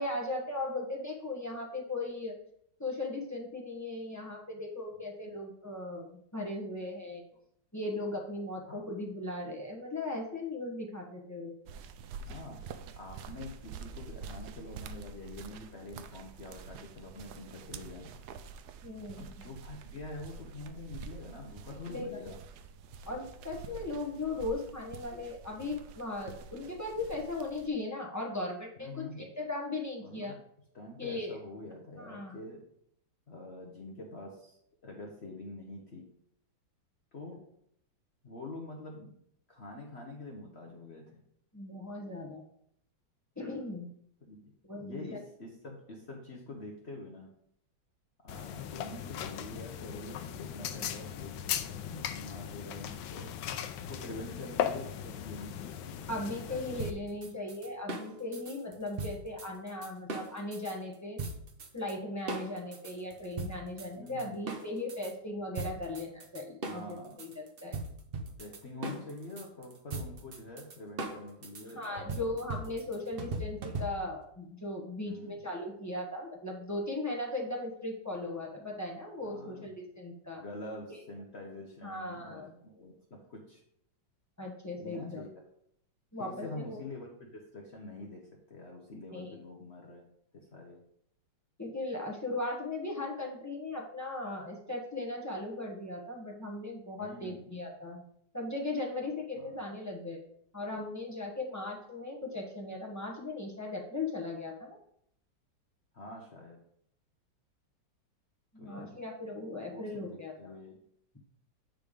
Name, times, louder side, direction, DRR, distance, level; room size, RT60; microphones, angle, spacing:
voice 1, 0.0-2.3 2.8-7.2 7.7-11.5 18.8-19.5 21.9-22.2 23.0-30.4 31.0-31.4 32.0-32.4 41.5-42.4 43.4-43.9 44.6-45.2 56.1-61.2 61.7-67.8 68.8-69.0 71.7-80.4 81.8-82.5 84.4-85.2 86.1-86.8 89.1-89.4 91.6-98.0 98.3-100.2 100.5-104.8 108.5-110.5, left 2 dB, 10° left, -2 dB, 1.0 m, -38 dB
sound 1, 11.7-27.7, right 5 dB, 70° right, 1.0 m, -47 dB
voice 2, 12.2-12.6 13.0-18.2 19.2-22.4 28.8-29.3 30.0-30.4 30.7-32.6 33.3-36.1 37.1-37.4 38.2-39.1 39.5-41.2 44.3-44.5 44.8-47.3 48.2-53.3 53.9-56.7 63.9-64.4 66.7-67.3 68.4-72.3 72.9-73.1 75.0-75.4 79.2-79.7 80.4-83.6 84.8-85.3 86.2-88.2 88.5-90.0 90.3-90.8 97.0-97.5 99.4-99.6 105.9-106.6 108.6-109.0 109.7-110.7, left 2 dB, 45° left, 0 dB, 0.9 m, -46 dB
sound 2, 48.3-56.9, left 9 dB, 90° left, 1.4 m, -38 dB
sound 3, 56.8-60.7 61.2-61.9 62.3-65.1 65.5-74.2, right 3 dB, 50° right, 0.7 m, -39 dB
9.2 x 3.4 x 5.1 m, 0.71 s
omnidirectional pair, 2.0 m